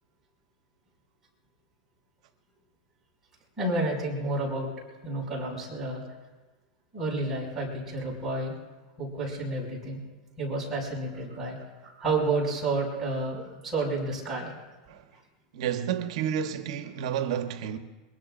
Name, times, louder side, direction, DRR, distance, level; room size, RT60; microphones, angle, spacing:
voice 1, 3.6-4.7 5.0-6.0 6.9-8.5 9.0-10.0 10.4-11.6 11.8-14.5, right 2 dB, 15° right, 6.0 m, -30 dB
voice 2, 15.5-17.8, right 9 dB, 70° right, 1.1 m, -30 dB
23.5 x 22.5 x 2.6 m
supercardioid pair, 155°, 3 cm